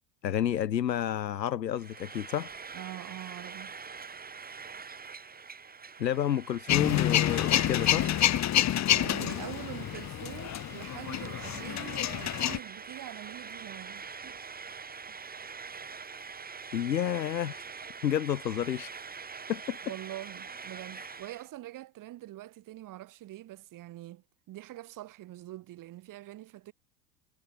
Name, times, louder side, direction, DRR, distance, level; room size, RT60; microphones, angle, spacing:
voice 1, 0.2-2.5 6.0-8.1 16.7-17.6 18.0-19.0 19.5-19.8 21.0-21.1, left 10 dB, 85° left, 1.1 m, -30 dB
Frying (food), 1.7-21.5, right 5 dB, 20° right, 6.7 m, -44 dB
voice 2, 2.7-3.7 8.7-14.5 15.1-15.2 19.8-26.7, right 15 dB, 40° right, 5.1 m, -44 dB
Male speech man speaking / Vehicle / Engine starting, 6.7-12.6, left 12 dB, 35° left, 3.2 m, -28 dB
hypercardioid pair, 90°, 49 cm